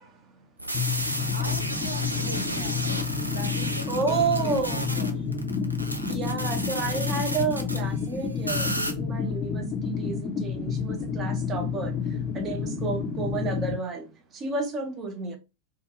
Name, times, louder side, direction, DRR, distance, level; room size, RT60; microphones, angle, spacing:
sound 1, 0.6-7.8 8.5-8.9, right 1 dB, 85° right, 0.4 m, -32 dB
sound 2, 0.7-13.7, left 6 dB, 25° left, 0.6 m, -30 dB
voice 1, 0.9-2.9 3.2-5.3, right 1 dB, 85° left, 1.0 m, -41 dB
voice 2, 3.9-4.8 6.1-9.6 10.0-11.9 12.3-14.0 14.4-15.4, right 4 dB, 25° right, 0.7 m, -30 dB
2.4 x 2.1 x 3.0 m
figure-of-eight pair, 90°, 0 cm